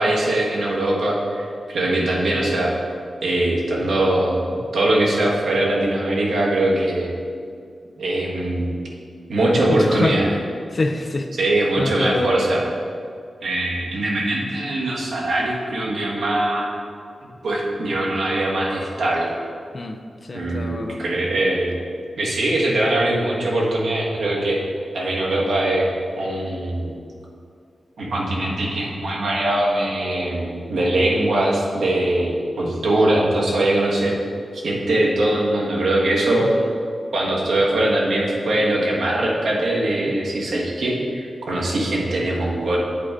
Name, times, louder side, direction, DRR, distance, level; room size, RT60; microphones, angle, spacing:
voice 1, 0.0-2.7 3.2-7.1 8.0-8.7 9.3-10.3 11.4-12.6 13.4-16.7 17.4-19.3 20.3-21.8 22.2-24.6 24.9-25.9 26.2-26.9 28.0-34.2 34.5-36.5 37.1-42.8, right 1 dB, 80° right, -4 dB, 1.4 m, -21 dB
voice 2, 9.7-10.2 10.7-11.3 11.8-12.4 19.7-21.0 36.4-36.7 40.1-40.2, left 2 dB, 35° left, 6 dB, 0.4 m, -26 dB
8.3 x 3.7 x 4.6 m, 2.3 s
wide cardioid pair, 160°, 0 cm